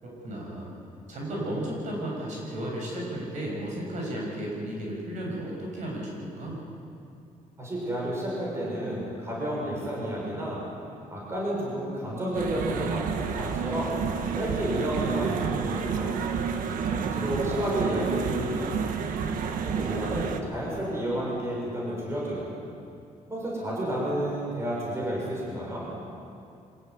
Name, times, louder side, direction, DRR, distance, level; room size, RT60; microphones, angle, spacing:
voice 1, 0.0-0.7 1.1-6.6 16.9-17.6, right 1 dB, 60° right, -2 dB, 7.3 m, -34 dB
voice 2, 7.6-10.6 11.1-13.0 13.3-14.0 14.3-16.2 16.9-18.6 19.6-22.5 23.3-25.9, right 1 dB, 20° right, -4 dB, 6.6 m, -31 dB
sound 1, 12.3-20.4, right 6 dB, 80° right, 1.6 m, -30 dB
25.5 x 15.5 x 9.6 m, 2.6 s
cardioid pair, 175°, 14 cm